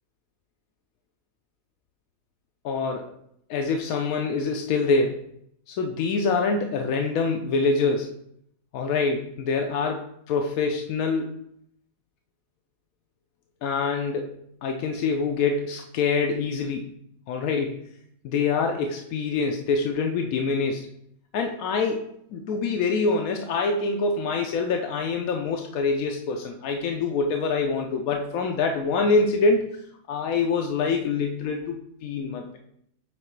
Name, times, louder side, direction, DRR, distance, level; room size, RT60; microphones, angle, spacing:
voice 1, 2.6-3.1 3.5-5.2 5.7-8.2 8.7-11.3 13.6-14.3 14.6-16.9 17.3-17.8 18.2-20.9 21.3-22.0 22.3-29.6 30.1-32.6, left 4 dB, 75° left, 3 dB, 1.0 m, -25 dB
7.3 x 2.9 x 4.5 m, 0.71 s
omnidirectional pair, 1.5 m